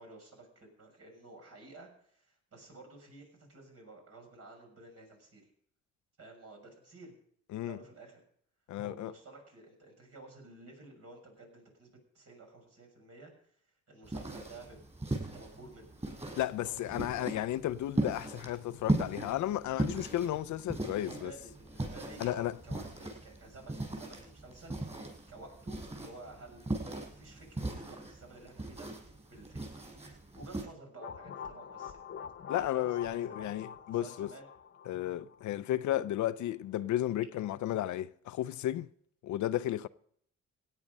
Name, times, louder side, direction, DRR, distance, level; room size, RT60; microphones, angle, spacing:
voice 1, 0.0-5.5 6.2-7.1 7.6-8.2 8.8-14.8 15.3-16.0 16.6-16.9 17.1-17.5 20.9-29.9 30.3-32.0 32.5-34.5, right 2 dB, 50° right, 6.6 m, -53 dB
voice 2, 8.7-9.1 16.4-21.3 22.2-22.5 32.5-34.3 34.9-38.9 39.2-39.9, left 13 dB, 70° left, 0.6 m, -33 dB
sound 1, 14.0-30.6, right 2 dB, 20° right, 6.6 m, -38 dB
sound 2, 31.0-35.8, left 7 dB, 45° left, 1.1 m, -46 dB
17.0 x 9.8 x 5.3 m
cardioid pair, 90°, 30 cm